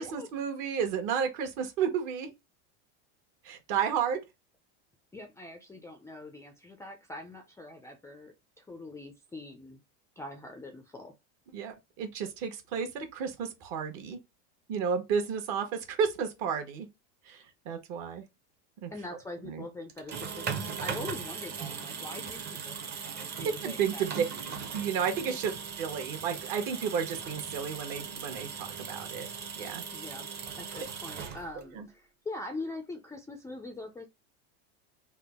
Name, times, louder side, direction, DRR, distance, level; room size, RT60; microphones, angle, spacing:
voice 1, 0.0-2.3 3.4-4.2 11.5-14.2 14.7-16.9 17.3-18.2 18.8-18.9 19.4-19.6 23.4-24.2 24.7-25.5 25.8-29.3 29.6-29.8 30.8-30.9 31.8-31.9, right 7 dB, 55° right, 1.1 m, -32 dB
voice 2, 5.1-9.8 10.2-11.1 18.9-24.1 25.3-25.4 29.9-30.3 30.6-34.1, left 2 dB, 10° left, 0.3 m, -43 dB
sound 1, 19.9-31.8, right 6 dB, 30° right, 0.7 m, -39 dB
3.5 x 2.1 x 3.5 m
supercardioid pair, 125°, 36 cm